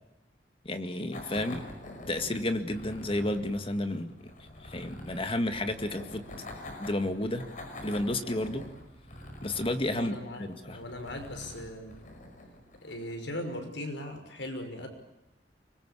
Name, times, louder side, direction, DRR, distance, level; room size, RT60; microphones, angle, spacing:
voice 1, 0.7-1.7 2.1-4.2 4.6-6.2 6.8-7.5 7.8-8.7 9.4-10.8, left 1 dB, 30° left, 8 dB, 2.0 m, -31 dB
sound 1, 1.1-13.3, left 1 dB, 45° left, 5.3 m, -46 dB
voice 2, 9.9-12.0 12.8-14.9, left 1 dB, 90° left, 5 dB, 5.6 m, -39 dB
24.5 x 22.0 x 8.4 m, 0.90 s
head